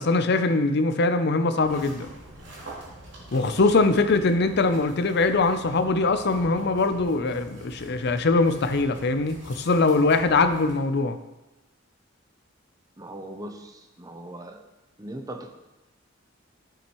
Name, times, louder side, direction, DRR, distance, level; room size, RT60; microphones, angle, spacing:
voice 1, 0.0-2.1 3.3-11.2, left 3 dB, 55° left, 10 dB, 0.6 m, -22 dB
sound 1, 1.6-10.8, right 1 dB, 65° right, 2.6 m, -45 dB
voice 2, 13.0-14.6 15.0-15.5, right 1 dB, 20° right, 6 dB, 0.6 m, -39 dB
10.5 x 7.1 x 3.0 m, 1.0 s
head